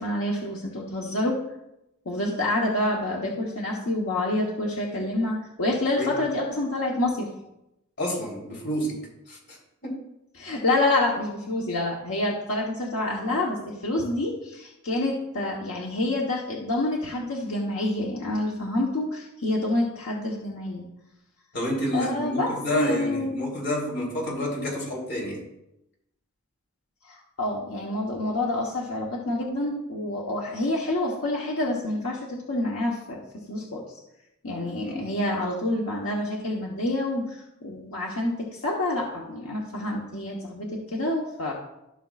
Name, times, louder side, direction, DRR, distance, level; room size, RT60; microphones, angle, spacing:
voice 1, 0.0-1.4 2.0-7.3 10.4-20.9 21.9-23.3 27.0-33.2 33.5-34.0 34.4-41.5, left 1 dB, 85° left, -2 dB, 1.2 m, -27 dB
voice 2, 8.0-9.0 9.3-9.6 9.8-9.9 21.5-25.4 34.8-35.1, equal, 55° left, -3 dB, 3.4 m, -29 dB
15.5 x 5.9 x 2.5 m, 0.89 s
head